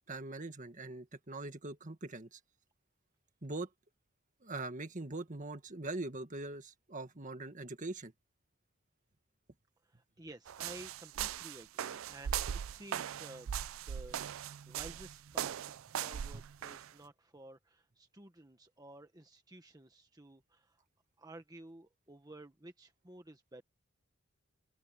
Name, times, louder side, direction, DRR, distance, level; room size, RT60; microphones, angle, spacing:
voice 1, 0.1-2.4 3.4-3.7 4.4-8.1 16.3-16.4, right 2 dB, 40° right, 1.8 m, -42 dB
voice 2, 9.8-20.9 21.2-23.6, right 1 dB, 20° right, 1.4 m, -53 dB
sound 1, 10.5-16.9, right 9 dB, 75° right, 0.4 m, -39 dB
open air
head